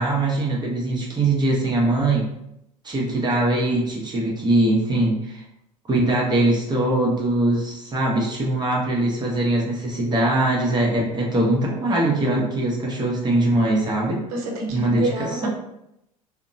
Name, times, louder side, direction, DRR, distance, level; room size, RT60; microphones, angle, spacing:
voice 1, 0.0-2.3 2.8-5.4 5.9-14.2 14.7-15.5, right 2 dB, 25° right, -3 dB, 0.8 m, -22 dB
voice 2, 14.3-15.5, right 3 dB, 70° right, 1 dB, 0.8 m, -28 dB
2.8 x 2.1 x 2.6 m, 0.82 s
hypercardioid pair, 80°, 19 cm